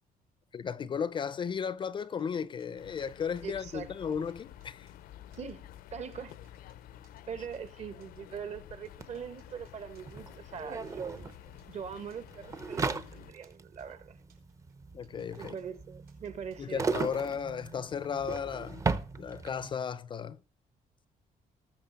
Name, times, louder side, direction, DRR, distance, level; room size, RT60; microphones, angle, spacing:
voice 1, 0.5-4.9 14.9-15.6 16.6-18.8 19.1-20.4, left 7 dB, 35° left, 0.5 m, -35 dB
sound 1, 2.0-3.5 4.1-5.0 5.3-5.5 6.1-7.2 7.5-8.2 8.8-10.1 10.5-11.7 12.1-12.3 12.7-13.9 14.3-15.8 16.1-16.7 17.2-17.4 18.0-18.7, right 7 dB, 80° right, 4.4 m, -68 dB
sound 2, 2.7-13.3, left 12 dB, 85° left, 0.6 m, -51 dB
voice 2, 3.4-3.9 5.4-6.3 7.3-11.3 11.7-14.2 15.4-16.9, right 7 dB, 50° right, 1.3 m, -42 dB
sound 3, 9.0-9.1 9.3-19.7, right 4 dB, 20° right, 0.6 m, -37 dB
19.5 x 6.6 x 4.0 m
cardioid pair, 155°, 15 cm